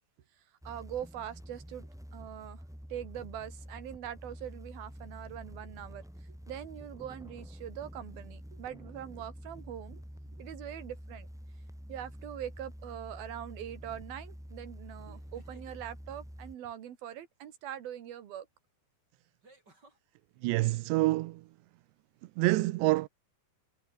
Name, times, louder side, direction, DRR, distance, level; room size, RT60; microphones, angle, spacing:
sound 1, 0.6-16.5, equal, 5° right, 0.5 m, -47 dB
voice 1, 0.7-2.6 2.9-6.0 6.5-10.0 10.4-11.3 11.9-18.5, right 10 dB, 65° right, 3.7 m, -42 dB
sound 2, 12.8-13.0 15.1-15.8 18.0-18.1 19.4-20.0, right 2 dB, 25° right, 6.6 m, -60 dB
voice 2, 20.4-21.4 22.4-23.1, right 20 dB, 90° right, 2.9 m, -27 dB
omnidirectional pair, 4.9 m